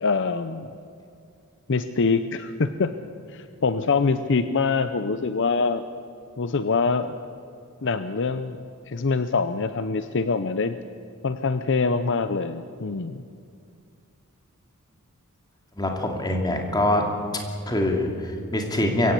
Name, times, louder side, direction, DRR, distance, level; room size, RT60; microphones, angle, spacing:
voice 1, 0.0-0.7 1.7-2.9 3.3-5.8 6.4-7.2 7.8-8.6 8.9-10.8 11.2-13.2, left 4 dB, 55° left, 10 dB, 0.7 m, -24 dB
voice 2, 15.8-17.0 17.7-19.1, left 1 dB, 20° left, 2 dB, 2.7 m, -24 dB
23.5 x 16.0 x 8.4 m, 2.3 s
head